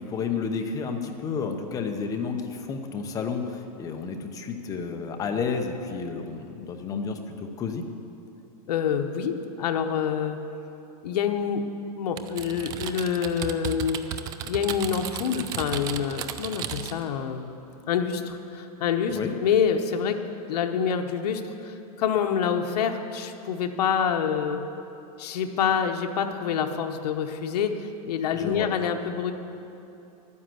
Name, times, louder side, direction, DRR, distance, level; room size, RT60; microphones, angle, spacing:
voice 1, 0.0-7.8 19.1-19.3 28.4-28.7, left 5 dB, 15° left, 5 dB, 0.7 m, -31 dB
voice 2, 8.7-10.4 11.0-11.6 12.0-14.0 14.4-17.5 17.9-20.2 20.5-24.6 25.2-29.3, left 7 dB, 85° left, 4 dB, 1.0 m, -27 dB
Typing, 12.2-17.1, right 10 dB, 20° right, 0.3 m, -35 dB
11.5 x 9.7 x 7.7 m, 2.9 s
supercardioid pair, 165°, 20 cm